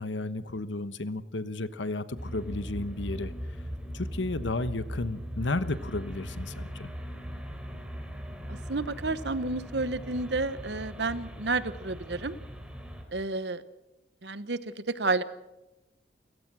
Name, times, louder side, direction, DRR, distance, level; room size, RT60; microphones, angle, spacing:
voice 1, 0.0-3.3 3.9-6.9, left 2 dB, 90° left, 13 dB, 1.2 m, -33 dB
sound 1, 2.2-13.0, equal, 5° right, 3.3 m, -39 dB
voice 2, 8.5-12.3 13.1-13.6 14.2-14.6 14.9-15.2, right 3 dB, 70° right, 14 dB, 1.1 m, -30 dB
30.0 x 16.0 x 6.2 m, 0.98 s
head